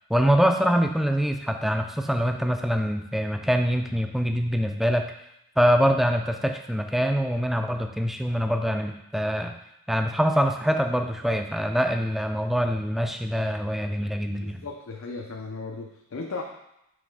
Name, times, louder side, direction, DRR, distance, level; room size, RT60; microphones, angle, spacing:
voice 1, 0.1-5.1 5.6-9.6 9.9-14.7, equal, ahead, 5 dB, 0.3 m, -24 dB
voice 2, 14.4-16.4, left 3 dB, 65° left, 0 dB, 0.5 m, -36 dB
6.2 x 3.3 x 4.7 m, 0.83 s
head